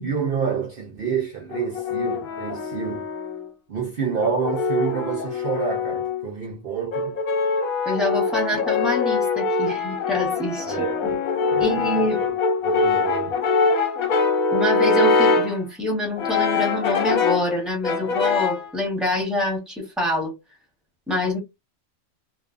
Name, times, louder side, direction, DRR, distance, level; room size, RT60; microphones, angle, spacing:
voice 1, 0.0-3.1 3.7-7.2 10.7-11.2 11.5-11.8 12.2-12.4 12.6-13.4, right 6 dB, 60° right, 0.6 m, -28 dB
Brass instrument, 1.5-3.5 4.2-6.2 6.9-15.6 16.2-17.5 17.8-18.7, left 5 dB, 85° left, 1.2 m, -23 dB
voice 2, 7.8-10.8 11.0-11.1 11.6-12.2 14.5-20.3 21.1-21.4, left 1 dB, ahead, 0.9 m, -26 dB
2.5 x 2.3 x 2.4 m
omnidirectional pair, 1.4 m